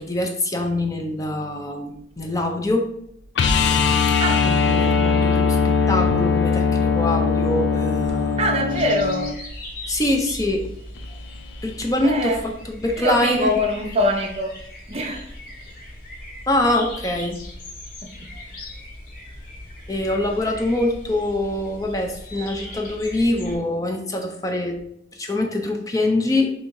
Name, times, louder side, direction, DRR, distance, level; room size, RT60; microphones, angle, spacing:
voice 1, 0.0-2.9 4.4-8.4 9.9-10.7 11.6-13.5 16.5-17.4 19.9-24.8 25.1-26.5, left 1 dB, 20° left, 0.5 m, -24 dB
sound 1, 3.4-9.3 11.8-11.9, left 5 dB, 75° left, 0.4 m, -20 dB
voice 2, 4.2-4.5 8.4-9.3 12.0-12.4 13.0-14.6 14.9-15.3 18.0-18.3, left 1 dB, 35° right, 0.5 m, -23 dB
sound 2, 8.7-23.6, left 1 dB, 50° left, 1.0 m, -39 dB
3.7 x 2.7 x 4.5 m
head